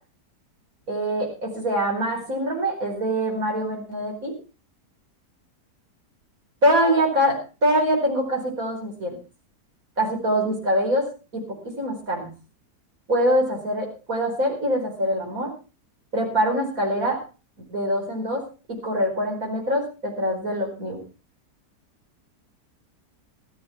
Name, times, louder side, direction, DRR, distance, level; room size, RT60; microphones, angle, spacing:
voice 1, 0.9-4.3 6.6-9.2 10.0-11.1 11.3-12.3 13.1-15.5 16.1-17.2 17.7-18.4 18.7-21.0, equal, 50° right, 1 dB, 5.3 m, -24 dB
15.0 x 13.0 x 4.4 m, 0.33 s
omnidirectional pair, 1.8 m